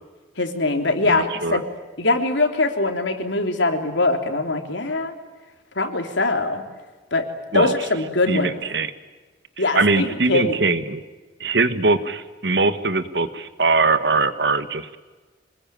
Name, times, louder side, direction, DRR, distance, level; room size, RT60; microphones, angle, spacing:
voice 1, 0.4-1.7 2.0-5.1 5.7-6.6 7.1-7.2 7.5-8.6 9.6-10.6, left 2 dB, 80° left, 5 dB, 3.4 m, -22 dB
voice 2, 1.1-1.6 7.5-7.7 8.3-8.9 9.7-11.0 11.4-15.0, right 3 dB, 65° right, 11 dB, 1.5 m, -21 dB
26.0 x 20.5 x 9.1 m, 1.3 s
head